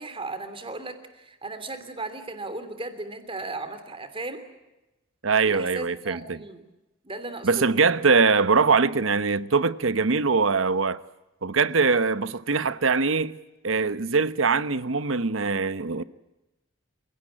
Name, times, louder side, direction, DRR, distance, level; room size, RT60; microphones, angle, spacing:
voice 1, 0.0-4.4 5.4-6.6 7.0-7.6, right 2 dB, 30° right, 3.1 m, -36 dB
voice 2, 5.2-6.4 7.4-11.0 11.4-13.4 13.6-16.0, right 4 dB, 85° right, 1.0 m, -22 dB
29.0 x 17.5 x 8.8 m
head